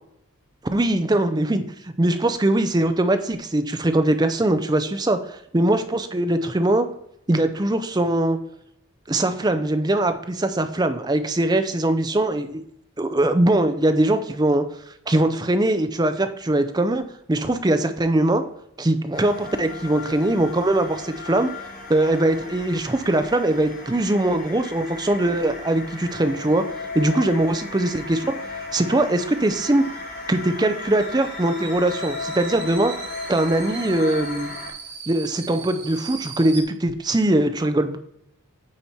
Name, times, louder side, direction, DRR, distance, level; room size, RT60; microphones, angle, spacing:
voice 1, 0.7-6.9 7.3-8.4 9.1-12.5 13.0-14.6 15.1-17.0 17.3-18.4 18.8-21.5 21.9-26.6 26.9-29.9 30.3-32.9 33.3-34.5 35.1-38.0, right 1 dB, 20° right, 8 dB, 0.5 m, -21 dB
sound 1, 19.1-34.7, left 3 dB, 40° left, 1.3 m, -36 dB
sound 2, 25.3-36.6, right 5 dB, 50° right, 1.7 m, -42 dB
8.7 x 4.3 x 4.5 m, 0.74 s
head